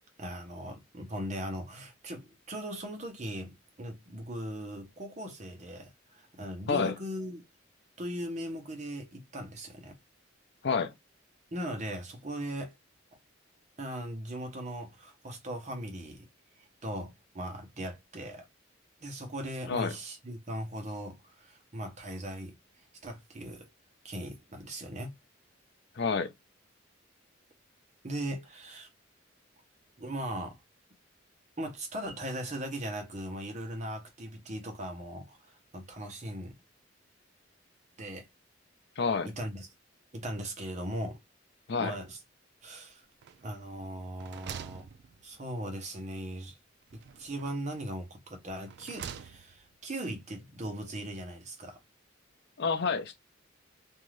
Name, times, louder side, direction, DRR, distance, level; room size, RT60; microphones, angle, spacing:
voice 1, 0.2-7.4 8.0-10.0 11.5-12.7 13.8-16.3 16.6-18.5 19.0-22.6 23.0-23.7 24.0-25.1 28.0-28.9 30.0-30.6 31.6-36.6 38.0-38.3 39.2-39.7 40.1-41.2 41.8-42.2 42.6-43.0 43.4-44.9 45.2-46.6 46.9-51.8, right 1 dB, 35° right, 0.8 m, -39 dB
voice 2, 26.0-26.3 39.0-39.3 41.7-41.9 52.6-53.2, left 5 dB, 60° left, 0.5 m, -28 dB
sound 1, 43.2-43.7 44.0-45.6 46.9-47.8 48.4-49.7, right 8 dB, 55° right, 0.3 m, -46 dB
2.6 x 2.4 x 3.2 m
head